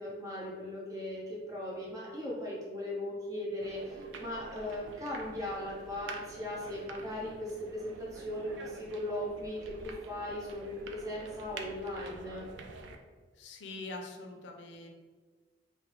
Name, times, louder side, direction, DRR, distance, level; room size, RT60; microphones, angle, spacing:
voice 1, 0.0-12.4, left 1 dB, 20° right, -6 dB, 0.8 m, -38 dB
sound 1, 3.6-13.0, right 3 dB, 90° right, 0.3 m, -47 dB
voice 2, 13.4-14.9, left 2 dB, 85° left, 3 dB, 0.4 m, -43 dB
3.3 x 2.1 x 3.0 m, 1.4 s
head